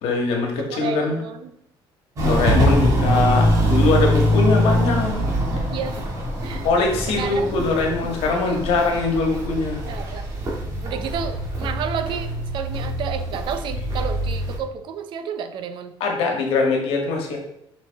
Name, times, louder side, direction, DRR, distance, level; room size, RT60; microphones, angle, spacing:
voice 1, 0.0-1.2 2.2-5.2 6.6-9.8 16.0-17.4, left 3 dB, 80° left, 2 dB, 1.6 m, -22 dB
voice 2, 0.6-1.5 2.5-2.9 5.7-6.0 6.4-6.7 7.2-7.7 8.4-8.6 9.9-10.2 10.8-15.9, right 7 dB, 55° right, 8 dB, 0.7 m, -31 dB
Walk footsteps, 2.2-14.6, equal, 35° right, 2.2 m, -23 dB
7.0 x 5.2 x 3.5 m, 0.79 s
cardioid pair, 165°, 10 cm